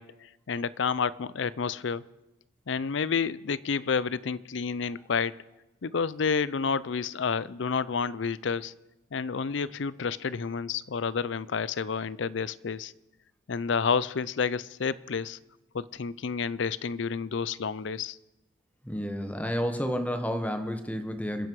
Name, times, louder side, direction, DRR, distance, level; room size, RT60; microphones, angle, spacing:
voice 1, 0.0-2.0 2.7-5.3 5.8-8.7 9.1-12.9 13.5-15.4 15.7-18.2, left 5 dB, 65° left, 19 dB, 0.5 m, -30 dB
voice 2, 18.8-21.5, equal, 10° left, 7 dB, 1.3 m, -30 dB
28.0 x 10.5 x 4.7 m, 1.0 s
head